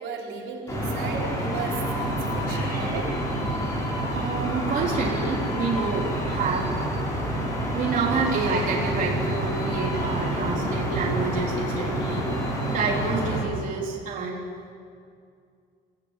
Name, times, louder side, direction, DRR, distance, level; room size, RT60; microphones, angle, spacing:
voice 1, 0.0-3.1, right 5 dB, 75° right, -1 dB, 4.6 m, -35 dB
sound 1, 0.7-13.4, right 1 dB, 15° left, 5.5 m, -28 dB
voice 2, 4.1-6.7 7.7-14.4, right 4 dB, 40° right, -3 dB, 3.8 m, -28 dB
27.0 x 17.5 x 9.1 m, 2.3 s
cardioid pair, 180°, 20 cm